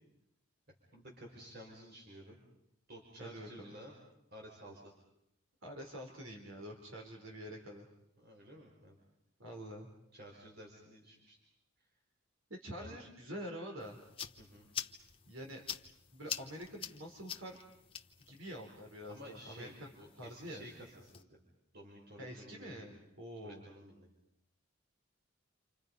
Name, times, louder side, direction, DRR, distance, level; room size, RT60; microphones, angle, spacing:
voice 1, 0.9-2.4 2.9-3.9 4.3-4.9 8.2-9.0 9.5-9.6 10.1-11.4 11.8-11.9 12.8-13.0 14.4-14.7 16.2-16.3 19.1-21.4 21.7-22.9 23.4-24.1, equal, 50° right, -1 dB, 5.2 m, -53 dB
voice 2, 3.2-3.7 5.6-7.9 9.4-9.9 12.5-14.0 15.3-15.6 16.1-17.6 18.3-19.9 20.2-20.7 22.2-23.6, equal, 70° right, 1 dB, 4.1 m, -46 dB
sound 1, 13.8-21.2, left 8 dB, 25° left, 0.9 m, -47 dB
29.5 x 27.0 x 5.5 m, 0.79 s
head